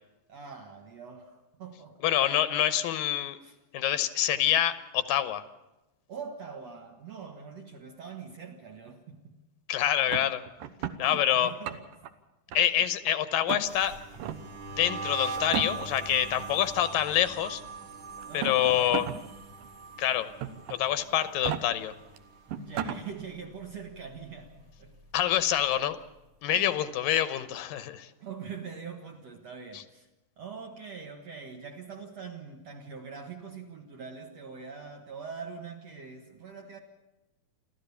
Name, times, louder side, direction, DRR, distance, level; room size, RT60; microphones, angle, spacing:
voice 1, 0.3-2.2 3.4-3.6 6.1-9.3 11.0-11.8 18.2-19.2 22.5-25.0 26.5-26.7 28.2-30.1 30.4-36.8, right 6 dB, 55° right, 2 dB, 2.4 m, -43 dB
voice 2, 2.0-3.4 3.7-5.4 9.7-10.4 11.0-11.5 12.5-14.0 14.8-17.6 18.3-19.0 20.0-20.3 20.7-21.9 25.1-26.0 26.4-28.1, left 11 dB, 80° left, 13 dB, 2.6 m, -26 dB
sound 1, 10.1-11.0 11.5-12.1 12.5-13.1 13.5-13.6 14.1-14.4 15.4-16.0 17.1-17.2 18.2-19.2 19.6-19.7 20.4-20.8 21.3-21.6 22.2-22.3 22.5-23.0, right 9 dB, 75° right, 2.6 m, -34 dB
sound 2, 13.6-22.8 23.1-23.5 23.8-25.4, right 4 dB, 40° right, 2.9 m, -41 dB
29.5 x 13.0 x 7.0 m, 1.0 s
omnidirectional pair, 4.1 m